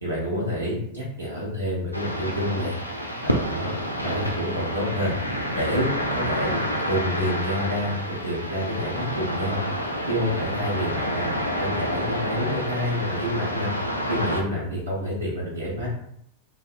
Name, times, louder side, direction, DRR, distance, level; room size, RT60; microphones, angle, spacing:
voice 1, 0.0-2.8 3.2-3.7 4.0-5.1 5.5-9.6 10.1-11.3 11.6-13.7 14.1-15.9, equal, 85° right, -6 dB, 0.7 m, -28 dB
sound 1, 1.9-14.4, equal, 90° left, 0.3 m, -29 dB
2.6 x 2.1 x 2.5 m, 0.72 s
figure-of-eight pair, 90°, 0 cm